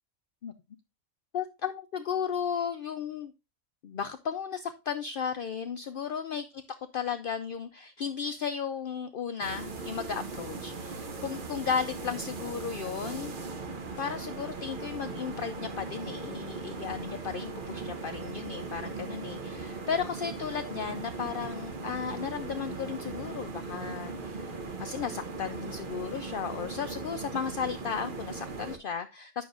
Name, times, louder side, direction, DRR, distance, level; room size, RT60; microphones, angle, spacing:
voice 1, 1.3-3.3 3.8-6.4 6.9-13.3 14.0-29.4, left 7 dB, 70° left, 9 dB, 0.5 m, -35 dB
sound 1, 9.4-28.8, right 3 dB, 45° right, 0.9 m, -39 dB
9.3 x 6.2 x 2.4 m, 0.26 s
omnidirectional pair, 1.5 m